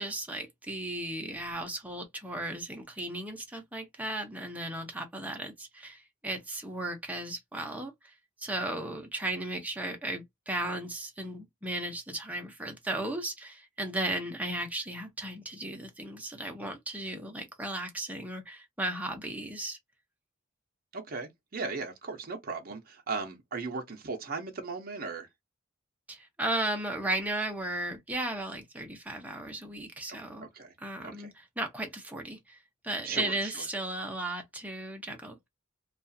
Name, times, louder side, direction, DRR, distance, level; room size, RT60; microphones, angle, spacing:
voice 1, 0.0-8.1 8.4-19.8 26.1-30.5 30.8-32.6 32.8-35.4, right 1 dB, 5° right, 0.6 m, -35 dB
voice 2, 20.9-25.3 30.1-30.7 31.0-31.3 33.0-33.6, right 4 dB, 45° right, 0.6 m, -37 dB
2.3 x 2.3 x 2.6 m
head